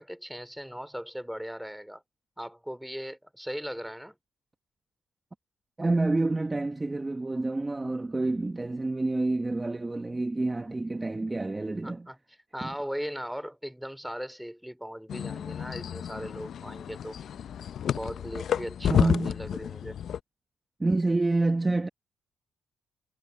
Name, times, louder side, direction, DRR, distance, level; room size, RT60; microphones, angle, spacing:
voice 1, 0.0-2.0 2.4-4.2 11.8-12.2 12.5-17.2 17.9-20.0, equal, ahead, 2.8 m, -38 dB
voice 2, 5.8-12.1 12.6-12.7 18.9-19.3 20.8-21.9, right 2 dB, 20° right, 1.2 m, -28 dB
sound 1, 15.1-20.2, left 9 dB, 60° left, 0.6 m, -31 dB
cardioid pair, 90°, 0 cm